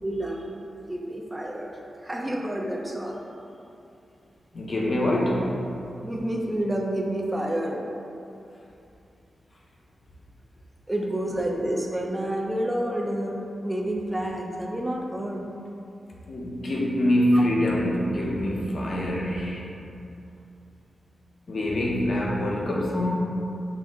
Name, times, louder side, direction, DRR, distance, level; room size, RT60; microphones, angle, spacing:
voice 1, 0.0-3.3 6.0-7.8 10.9-13.3 13.6-15.5 17.3-17.4, right 1 dB, 10° right, 0 dB, 0.4 m, -29 dB
voice 2, 4.5-5.6 11.3-11.4 16.2-19.6 21.5-23.2, left 1 dB, 45° left, -3 dB, 0.6 m, -25 dB
5.9 x 2.1 x 3.5 m, 2.7 s
wide cardioid pair, 140°, 0 cm